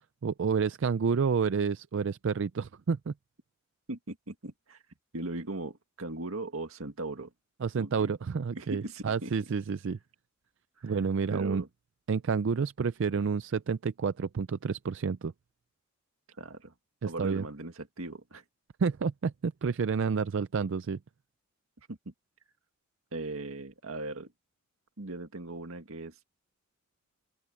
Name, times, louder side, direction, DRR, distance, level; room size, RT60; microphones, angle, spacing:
voice 1, 0.2-3.1 7.6-10.0 10.8-11.6 12.1-15.3 17.0-17.4 18.8-21.0, right 5 dB, 60° right, 0.4 m, -29 dB
voice 2, 3.9-4.8 5.1-7.3 7.8-8.1 8.6-9.3 10.8-11.0 11.3-11.7 16.4-16.7 17.0-18.4 21.8-22.1 23.1-24.3 25.0-26.2, right 2 dB, 80° right, 2.0 m, -39 dB
open air
head